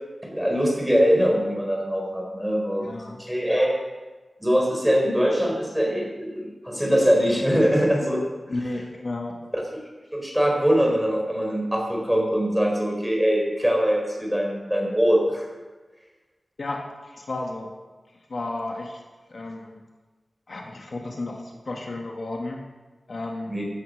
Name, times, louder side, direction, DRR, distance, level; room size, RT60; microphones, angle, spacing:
voice 1, 0.2-3.8 4.4-8.2 9.5-9.6 10.1-15.5 23.5-23.7, equal, 5° right, 0 dB, 4.3 m, -22 dB
voice 2, 2.8-3.2 8.5-9.4 16.6-17.7 18.3-19.0 19.3-19.8 20.5-22.6 23.1-23.7, left 2 dB, 60° left, 0 dB, 1.9 m, -33 dB
16.0 x 10.0 x 6.5 m, 1.2 s
wide cardioid pair, 110°, 0 cm